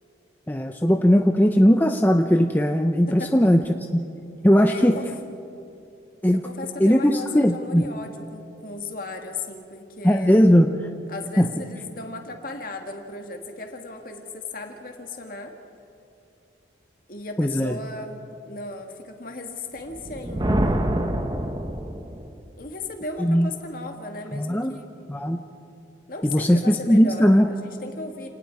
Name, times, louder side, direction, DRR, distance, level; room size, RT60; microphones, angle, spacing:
voice 1, 0.5-3.6 4.4-5.0 6.2-6.4 6.8-7.8 10.0-10.7 11.4-11.5 17.4-17.8 23.2-23.5 24.3-24.7 25.1-25.4 26.2-27.5, equal, 10° left, 4 dB, 0.6 m, -18 dB
voice 2, 4.7-5.1 6.3-10.5 11.1-15.5 17.1-21.0 22.6-25.3 26.1-28.3, left 2 dB, 50° left, 3 dB, 2.1 m, -36 dB
Thunder, 19.9-22.3, right 1 dB, 25° right, 1.0 m, -26 dB
29.0 x 19.0 x 4.8 m, 2.6 s
head